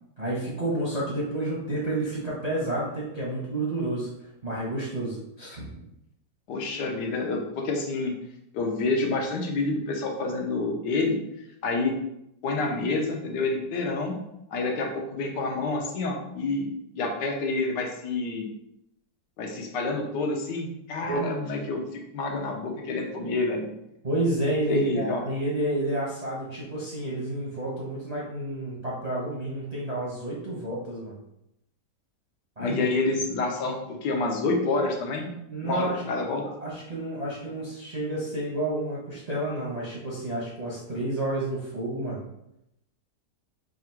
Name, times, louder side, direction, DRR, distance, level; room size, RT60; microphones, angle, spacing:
voice 1, 0.2-4.1 4.4-5.8 21.1-21.2 24.0-31.1 32.6-32.8 35.5-36.0 36.6-42.2, right 1 dB, 40° right, -6 dB, 0.5 m, -30 dB
voice 2, 6.5-8.1 8.5-11.2 11.6-11.9 12.4-14.2 14.5-16.7 16.9-18.5 19.4-23.7 24.7-25.2 32.6-35.3 35.6-36.4, left 3 dB, 85° left, 1 dB, 1.4 m, -28 dB
3.6 x 2.4 x 4.3 m, 0.83 s
omnidirectional pair, 1.8 m